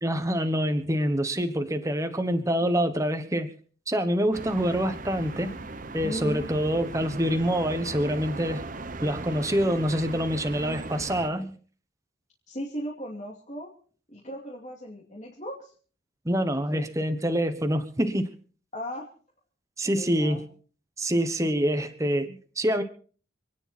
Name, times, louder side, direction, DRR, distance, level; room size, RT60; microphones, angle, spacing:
voice 1, 0.0-3.5 3.9-5.6 5.9-8.7 9.0-11.6 16.2-18.3 19.8-20.4 21.0-22.8, equal, 15° right, 8 dB, 1.2 m, -26 dB
sound 1, 4.3-11.3, right 3 dB, 40° right, 0.9 m, -38 dB
voice 2, 6.0-6.5 12.5-13.7 14.1-15.7 16.7-16.8 18.7-19.1 19.8-20.4, equal, 35° left, -3 dB, 2.7 m, -37 dB
27.5 x 10.0 x 4.3 m, 0.43 s
head